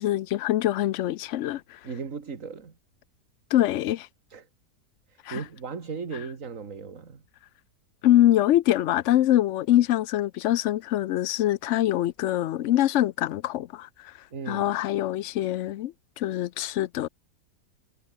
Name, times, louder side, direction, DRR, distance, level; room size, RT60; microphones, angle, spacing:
voice 1, 0.0-1.8 3.5-4.1 5.2-5.4 8.0-14.1 14.5-17.1, left 13 dB, 65° left, 0.8 m, -24 dB
voice 2, 1.8-2.7 4.3-4.5 5.1-7.2 14.3-14.7, right 5 dB, 55° right, 2.4 m, -37 dB
omnidirectional pair, 1.7 m